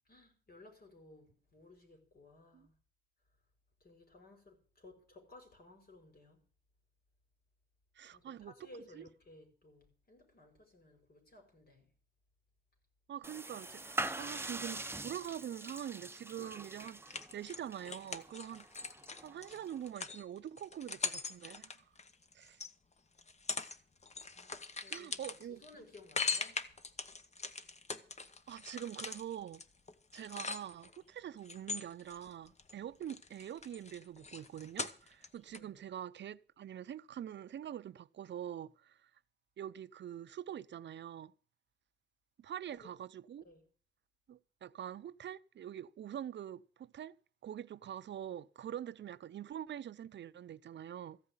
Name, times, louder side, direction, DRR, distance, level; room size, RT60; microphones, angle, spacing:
voice 1, 0.1-2.7 3.8-6.4 8.1-11.9 24.3-26.6 35.5-35.8 42.7-42.9 43.4-43.6, left 2 dB, 55° left, 4.9 m, -58 dB
voice 2, 7.9-8.5 8.9-9.1 13.1-18.9 19.2-21.9 22.3-22.6 24.9-25.6 28.5-29.6 30.1-39.1 39.6-41.3 42.4-43.4 44.3-47.2 47.4-51.2, right 10 dB, 80° right, 0.5 m, -45 dB
sound 1, 13.2-19.9, right 2 dB, 15° right, 0.7 m, -44 dB
sound 2, 16.9-22.7 23.2-23.8 24.0-31.0 31.4-32.7 33.0-35.3 35.5-35.6, left 4 dB, 35° left, 1.0 m, -41 dB
14.5 x 5.6 x 9.5 m
wide cardioid pair, 95°, 18 cm